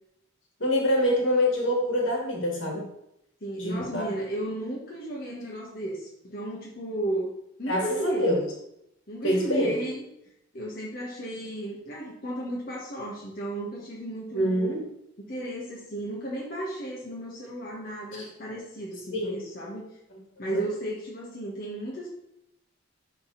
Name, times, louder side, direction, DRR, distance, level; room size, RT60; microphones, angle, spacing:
voice 1, 0.6-2.9 3.6-4.1 7.7-8.4 9.2-9.7 14.3-14.8 19.1-19.4 20.5-20.7, equal, 75° left, -1 dB, 2.4 m, -25 dB
voice 2, 3.4-7.3 7.6-8.4 9.1-10.1 10.5-14.7 15.2-19.8 20.4-22.1, right 1 dB, 50° left, -5 dB, 1.7 m, -34 dB
11.0 x 4.1 x 4.1 m, 0.78 s
head